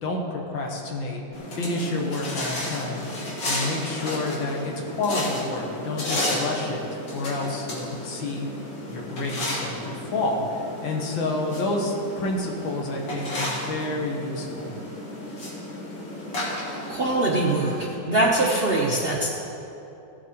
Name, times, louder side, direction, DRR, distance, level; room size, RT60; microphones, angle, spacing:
voice 1, 0.0-1.2 1.6-3.1 3.4-8.5 8.9-14.7, left 2 dB, 80° left, 0 dB, 2.1 m, -29 dB
sound 1, 1.3-18.0, left 1 dB, 65° left, 2.6 m, -33 dB
voice 2, 16.9-19.3, right 2 dB, 45° right, -4 dB, 0.8 m, -23 dB
15.5 x 7.5 x 4.4 m, 2.9 s
omnidirectional pair, 2.1 m